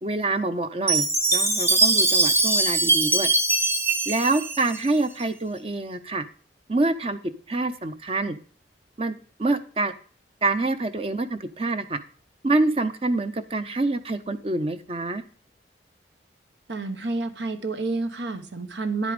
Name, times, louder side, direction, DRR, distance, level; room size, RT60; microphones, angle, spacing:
voice 1, 0.0-1.0 1.3-3.3 4.1-6.2 6.7-7.2 7.5-8.4 9.0-9.9 10.4-12.0 12.4-15.2, right 2 dB, 30° right, 10 dB, 0.7 m, -26 dB
Chime, 0.9-5.2, right 2 dB, 15° right, 1.1 m, -22 dB
voice 2, 16.7-19.1, right 3 dB, 75° right, 8 dB, 1.2 m, -29 dB
10.0 x 8.3 x 5.1 m, 0.41 s
head